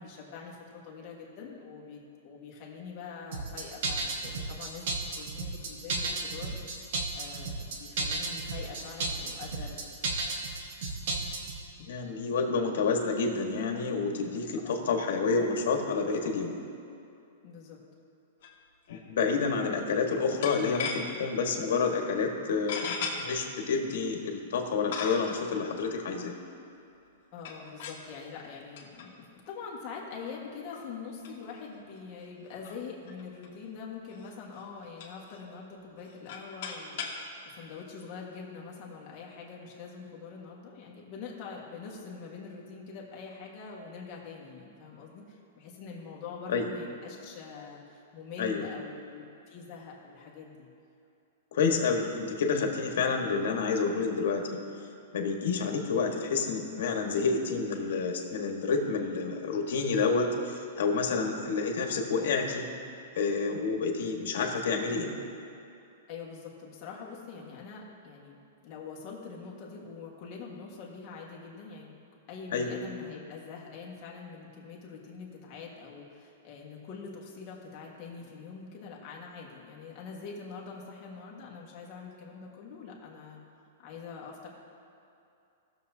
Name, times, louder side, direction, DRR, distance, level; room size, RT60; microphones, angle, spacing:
voice 1, 0.0-4.8 5.1-6.5 7.1-9.8 10.1-10.2 14.5-14.8 17.4-17.8 27.3-50.7 51.8-51.9 66.1-71.9 72.3-83.4 83.8-84.5, left 5 dB, 30° left, -3 dB, 1.6 m, -44 dB
sound 1, 3.3-11.6, right 3 dB, 55° right, 1.2 m, -33 dB
voice 2, 11.9-16.5 18.9-26.3 46.5-46.7 48.4-48.7 51.5-54.4 55.1-62.6 63.2-65.1 72.5-72.7, left 4 dB, 65° left, 2 dB, 1.5 m, -29 dB
sound 2, 18.4-18.6 18.9-19.0 20.4-21.2 21.8-21.9 22.7-23.1 24.0-24.1 24.9-25.4 27.4-28.1 28.8-29.1 29.5-29.6 30.3-30.4 30.7-30.9 31.2-31.3 31.6-31.7 32.0-32.1 32.5-33.5 34.1-34.3 34.6-35.4 36.0-37.2, left 6 dB, 50° left, 1.5 m, -37 dB
17.5 x 7.0 x 2.8 m, 2.7 s
supercardioid pair, 170°, 0 cm